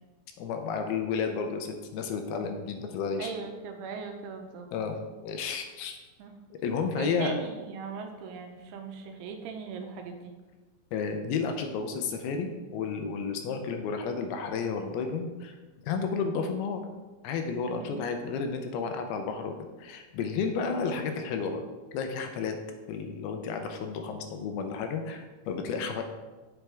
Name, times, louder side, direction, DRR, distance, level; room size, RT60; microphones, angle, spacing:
voice 1, 0.4-3.3 4.7-6.0 6.5-7.3 10.9-15.5 15.8-16.8 17.2-21.6 21.9-22.5 22.9-26.0, left 5 dB, 80° left, 5 dB, 2.5 m, -32 dB
voice 2, 3.2-4.7 6.2-6.3 7.0-10.3 17.8-18.0 25.6-25.8, right 5 dB, 85° right, 4 dB, 2.7 m, -39 dB
7.7 x 7.2 x 3.4 m, 1.2 s
omnidirectional pair, 4.6 m